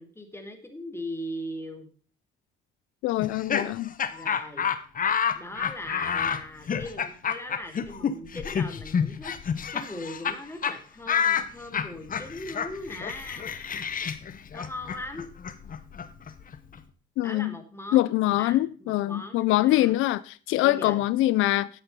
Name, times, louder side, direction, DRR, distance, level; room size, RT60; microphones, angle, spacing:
voice 1, 0.0-1.9 4.1-4.7 5.3-9.3 9.7-13.8 14.5-15.3 17.2-19.9 20.6-21.0, left 1 dB, 10° left, 2.4 m, -39 dB
voice 2, 3.0-3.9 17.2-17.5 17.9-21.7, left 16 dB, 90° left, 0.4 m, -24 dB
Laughter, 3.2-10.4 10.6-10.8 11.1-16.8, left 7 dB, 45° left, 1.0 m, -29 dB
10.0 x 8.2 x 5.3 m
cardioid pair, 90°, 20 cm